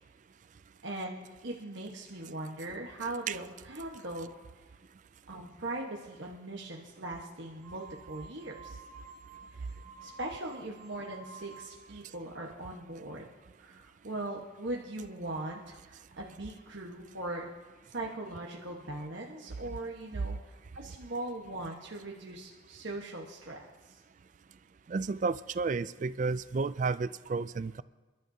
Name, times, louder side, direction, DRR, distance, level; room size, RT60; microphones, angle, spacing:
voice 1, 0.8-4.3 5.3-8.8 9.5-9.7 10.0-13.3 13.6-17.5 17.9-23.6 23.9-24.0, right 2 dB, 65° right, -2 dB, 1.3 m, -40 dB
sound 1, 7.6-12.0, right 4 dB, 5° right, 3.8 m, -51 dB
voice 2, 24.9-27.8, right 4 dB, 40° right, 16 dB, 0.3 m, -32 dB
28.5 x 12.5 x 2.8 m, 1.3 s
head